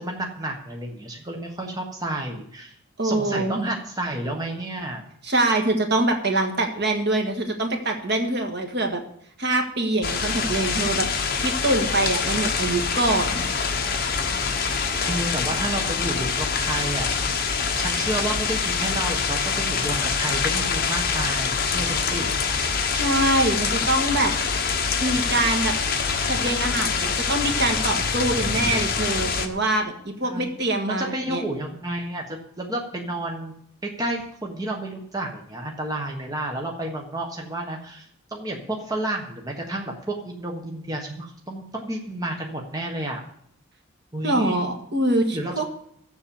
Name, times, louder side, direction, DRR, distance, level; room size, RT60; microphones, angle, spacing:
voice 1, 0.0-2.8 3.0-5.0 14.8-17.1 17.8-22.3 28.5-28.9 30.2-30.5 30.9-33.5 33.8-43.2 44.1-44.6 45.3-45.6, right 1 dB, 15° right, 0 dB, 1.3 m, -31 dB
voice 2, 3.0-3.7 5.2-9.0 9.4-11.1 11.4-13.5 22.9-24.3 25.0-25.7 26.2-31.4 44.2-45.7, right 2 dB, 50° right, 4 dB, 1.8 m, -24 dB
sound 1, 10.0-29.5, left 5 dB, 45° left, 1.2 m, -25 dB
15.0 x 7.4 x 7.1 m, 0.69 s
head